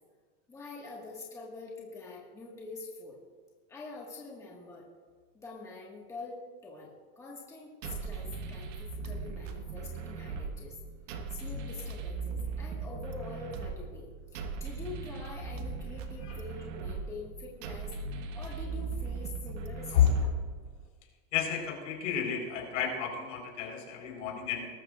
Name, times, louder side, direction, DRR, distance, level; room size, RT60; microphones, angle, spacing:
voice 1, 0.5-3.2 3.7-4.9 5.4-10.8 11.3-20.3, left 3 dB, 10° left, -3 dB, 1.7 m, -45 dB
sound 1, 7.8-20.8, right 4 dB, 80° right, 1.5 m, -39 dB
voice 2, 21.3-24.7, left 8 dB, 85° left, 1 dB, 4.4 m, -30 dB
20.0 x 13.0 x 2.5 m, 1.4 s
supercardioid pair, 165°, 37 cm